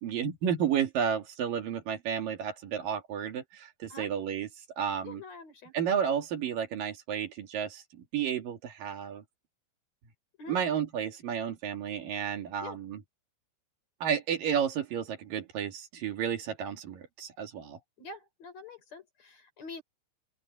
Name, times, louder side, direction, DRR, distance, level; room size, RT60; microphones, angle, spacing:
voice 1, 0.0-4.5 4.8-5.2 5.7-9.2 10.5-13.0 14.0-17.8, right 8 dB, 55° right, 3.2 m, -32 dB
voice 2, 5.0-5.8 10.4-10.6 12.6-12.8 18.0-19.8, left 4 dB, 35° left, 5.2 m, -45 dB
open air
omnidirectional pair, 5.7 m